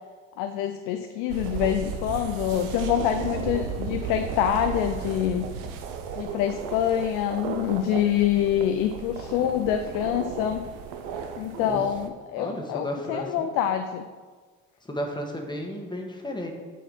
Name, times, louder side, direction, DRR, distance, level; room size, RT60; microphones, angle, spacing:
voice 1, 0.4-5.5 6.1-10.6 11.4-14.0, left 10 dB, 80° left, 7 dB, 0.5 m, -26 dB
sound 1, 1.3-12.1, right 7 dB, 75° right, 0.8 m, -34 dB
voice 2, 12.4-13.5 14.9-16.5, equal, 15° left, 1 dB, 1.4 m, -33 dB
7.2 x 4.7 x 5.4 m, 1.4 s
supercardioid pair, 75°, 32 cm